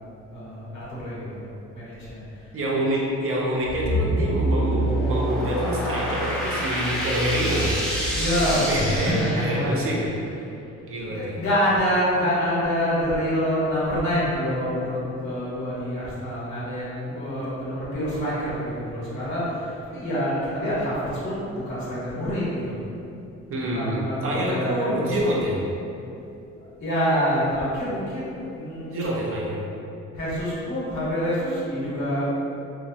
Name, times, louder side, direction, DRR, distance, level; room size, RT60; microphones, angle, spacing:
voice 1, 0.3-2.2 8.1-9.7 11.1-22.8 23.6-25.4 26.6-29.1 30.1-32.3, equal, 70° left, -9 dB, 1.3 m, -26 dB
voice 2, 2.5-8.2 8.4-10.1 10.9-11.4 17.4-17.5 23.5-25.6 28.9-29.7, equal, 45° right, -3 dB, 0.6 m, -27 dB
sound 1, 3.6-9.9, right 1 dB, 5° left, 0.5 m, -26 dB
3.0 x 2.0 x 2.6 m, 2.7 s
cardioid pair, 90°, 30 cm